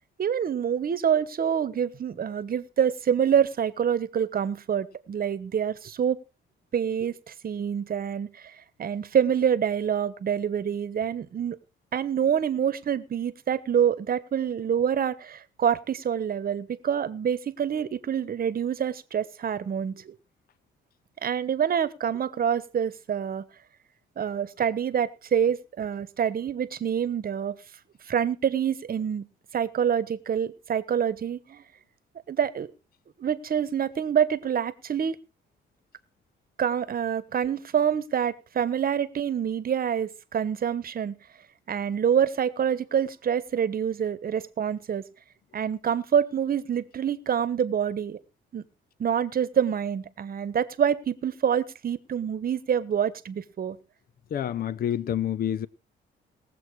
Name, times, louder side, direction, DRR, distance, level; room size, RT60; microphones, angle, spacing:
voice 1, 0.2-6.2 6.7-11.6 11.9-20.2 21.2-23.4 24.2-27.6 28.1-29.3 29.5-31.6 32.3-32.7 33.2-35.2 36.6-41.2 41.7-45.0 45.5-48.2 48.5-48.6 49.0-53.8, right 8 dB, 45° right, 1.1 m, -26 dB
voice 2, 54.3-55.7, left 10 dB, 50° left, 0.5 m, -28 dB
19.0 x 7.7 x 4.7 m
cardioid pair, 90°, 20 cm